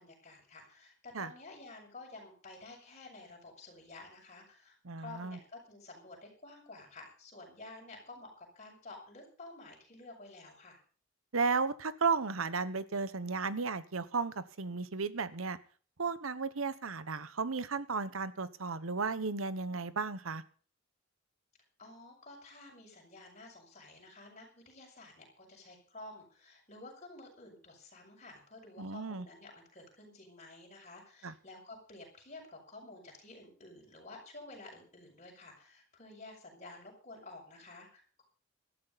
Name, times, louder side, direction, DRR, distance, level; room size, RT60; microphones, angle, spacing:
voice 1, 0.0-10.8 21.8-38.2, left 2 dB, 35° left, 0 dB, 6.4 m, -51 dB
voice 2, 4.8-5.4 11.3-15.6 16.0-20.4 28.8-29.3 31.2-31.3, right 4 dB, 90° right, 15 dB, 1.0 m, -34 dB
18.0 x 13.5 x 4.1 m, 0.41 s
head